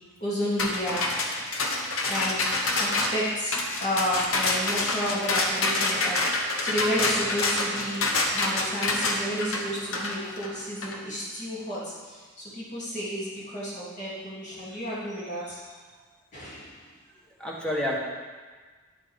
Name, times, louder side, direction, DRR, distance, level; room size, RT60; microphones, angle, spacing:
voice 1, 0.2-1.0 2.1-2.5 2.8-8.0 8.3-15.6 16.3-16.8, equal, 35° left, -8 dB, 2.9 m, -31 dB
sound 1, 0.6-11.0, left 2 dB, 65° left, 1.1 m, -27 dB
voice 2, 17.1-18.0, left 1 dB, 5° left, -4 dB, 1.3 m, -30 dB
10.5 x 7.8 x 3.7 m, 1.4 s
head